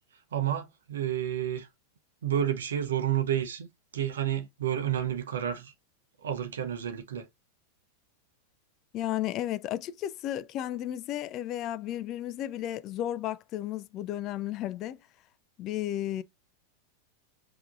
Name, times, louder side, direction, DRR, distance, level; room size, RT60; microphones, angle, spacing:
voice 1, 0.3-1.7 2.2-3.7 3.9-5.7 6.2-7.3, right 10 dB, 65° right, 0.8 m, -30 dB
voice 2, 8.9-15.0 15.6-16.2, left 12 dB, 35° left, 0.4 m, -33 dB
5.8 x 2.9 x 2.5 m
figure-of-eight pair, 90°, 0 cm